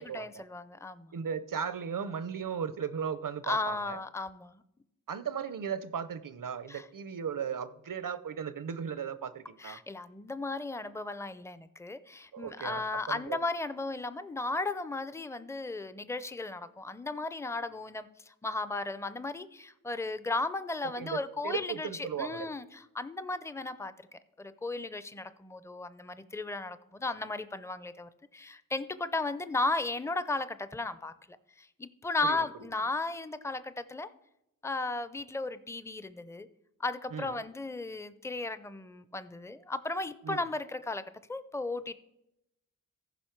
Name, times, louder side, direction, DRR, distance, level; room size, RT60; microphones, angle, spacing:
voice 1, 0.0-1.1 3.4-4.6 6.7-6.9 9.6-31.1 31.6-34.1 34.6-36.5 36.8-41.9, left 2 dB, 10° left, 13 dB, 0.4 m, -35 dB
voice 2, 1.1-4.0 5.1-9.8 12.3-13.4 21.0-22.5 32.2-32.4 37.1-37.3 40.2-40.4, right 7 dB, 70° right, 13 dB, 0.6 m, -36 dB
15.0 x 5.2 x 4.5 m, 0.85 s
wide cardioid pair, 75°, 33 cm